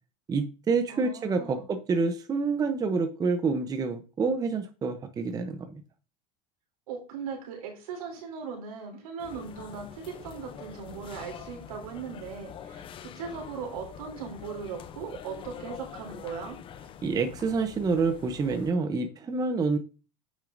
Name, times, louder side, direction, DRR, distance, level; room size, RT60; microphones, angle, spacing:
voice 1, 0.3-5.7 17.0-19.8, right 4 dB, 20° right, 8 dB, 0.7 m, -27 dB
voice 2, 0.9-1.6 6.9-16.6, right 6 dB, 85° right, 1 dB, 3.1 m, -39 dB
sound 1, 9.2-18.7, left 8 dB, 30° left, 0.5 m, -45 dB
8.4 x 6.4 x 2.6 m, 0.34 s
supercardioid pair, 130°, 19 cm